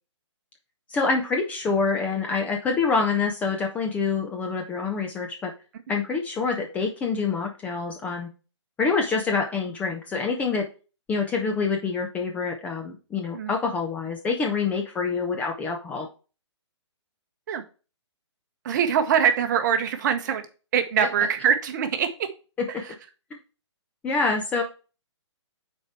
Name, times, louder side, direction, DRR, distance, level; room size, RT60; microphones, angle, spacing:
voice 1, 0.9-5.5 5.9-8.3 8.8-10.6 11.1-16.1 22.6-22.7 24.0-24.6, left 4 dB, 10° left, 2 dB, 0.5 m, -26 dB
voice 2, 18.6-20.5 20.7-22.3 22.7-22.9, right 8 dB, 40° right, 8 dB, 1.0 m, -23 dB
6.4 x 4.4 x 4.7 m, 0.34 s
hypercardioid pair, 150°, 15 cm